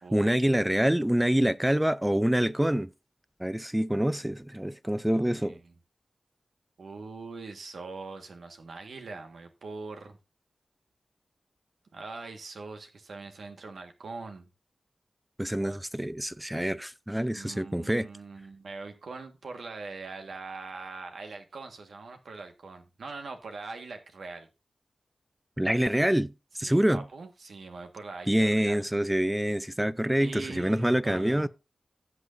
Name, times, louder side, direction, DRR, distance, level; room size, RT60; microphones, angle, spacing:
voice 1, 0.1-2.9 3.4-5.6 15.4-18.1 25.6-27.1 28.3-31.5, right 1 dB, 10° right, 0.5 m, -26 dB
voice 2, 5.1-5.6 6.8-10.2 11.9-14.5 15.6-16.0 17.3-24.5 26.6-28.8 30.2-31.5, right 3 dB, 85° right, 1.5 m, -42 dB
16.0 x 6.3 x 2.6 m
wide cardioid pair, 70°, 0 cm